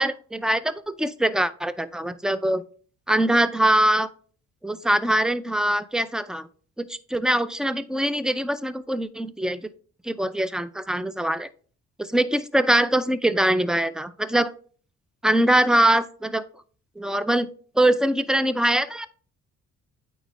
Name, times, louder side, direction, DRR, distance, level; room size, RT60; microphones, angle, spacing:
voice 1, 0.0-2.6 3.1-4.1 4.6-6.5 6.9-9.6 10.1-11.5 12.0-14.5 15.2-16.4 17.0-17.5 17.8-19.1, right 1 dB, ahead, 14 dB, 0.4 m, -23 dB
9.1 x 3.6 x 3.2 m, 0.42 s
cardioid pair, 90°, 30 cm